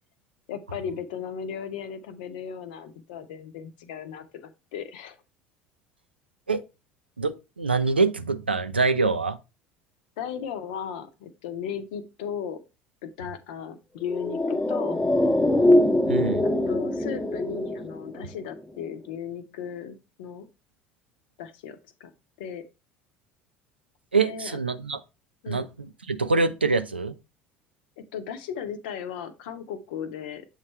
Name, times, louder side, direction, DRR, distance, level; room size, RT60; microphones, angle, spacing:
voice 1, 0.5-5.2 10.2-12.6 13.0-15.0 16.4-20.5 21.4-22.1 22.4-22.6 24.2-24.6 25.4-25.7 28.0-30.5, left 8 dB, 65° left, 0.7 m, -36 dB
voice 2, 7.2-9.4 16.1-16.5 24.1-25.0 25.5-27.2, right 4 dB, 85° right, 0.4 m, -25 dB
sound 1, 14.0-18.6 18.8-18.9, left 1 dB, 10° left, 0.8 m, -23 dB
7.4 x 3.2 x 4.4 m
figure-of-eight pair, 65°, 6 cm